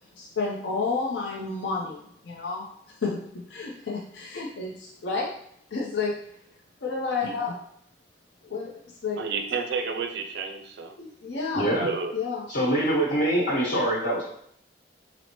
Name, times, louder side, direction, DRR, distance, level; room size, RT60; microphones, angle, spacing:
voice 1, 0.2-2.7 3.0-5.3 5.7-6.2 6.8-7.6 8.5-8.7 9.0-9.2 11.0-11.7 12.1-12.5, left 4 dB, 90° left, -3 dB, 0.6 m, -30 dB
voice 2, 9.2-11.0 11.8-12.1, right 5 dB, 65° right, 5 dB, 0.4 m, -30 dB
voice 3, 11.5-11.9 12.5-14.2, right 1 dB, 65° left, -6 dB, 1.3 m, -24 dB
4.1 x 2.0 x 2.9 m, 0.69 s
head